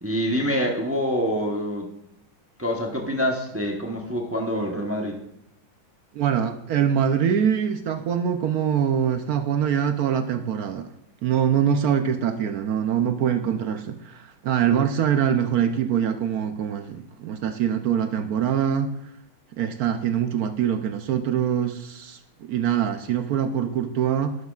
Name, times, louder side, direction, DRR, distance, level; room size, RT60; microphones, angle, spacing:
voice 1, 0.0-1.9 2.6-5.2, equal, 20° right, 1 dB, 0.3 m, -26 dB
voice 2, 6.1-10.9 11.2-18.9 19.6-24.4, right 8 dB, 70° right, 8 dB, 0.8 m, -24 dB
11.5 x 11.5 x 2.4 m, 0.85 s
omnidirectional pair, 2.2 m